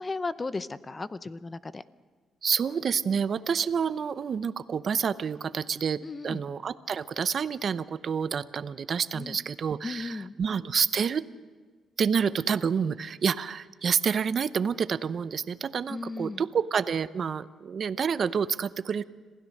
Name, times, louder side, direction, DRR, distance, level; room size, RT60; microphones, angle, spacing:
voice 1, 0.0-1.8 6.0-6.4 9.1-9.4 9.8-10.3 15.9-16.4, left 3 dB, 25° left, 15 dB, 0.7 m, -35 dB
voice 2, 2.4-11.2 12.0-19.0, right 6 dB, 50° right, 15 dB, 0.7 m, -28 dB
26.5 x 16.5 x 6.5 m, 1.5 s
cardioid pair, 110°, 0 cm